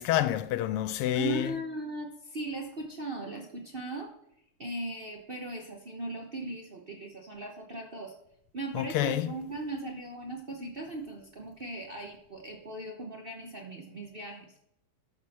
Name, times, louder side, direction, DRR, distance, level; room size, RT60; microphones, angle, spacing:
voice 1, 0.0-1.5 8.7-9.3, left 12 dB, 85° left, 1.6 m, -28 dB
voice 2, 1.1-4.1 4.6-8.1 8.5-14.5, right 2 dB, 45° right, 0.7 m, -38 dB
12.5 x 6.1 x 4.3 m
omnidirectional pair, 2.4 m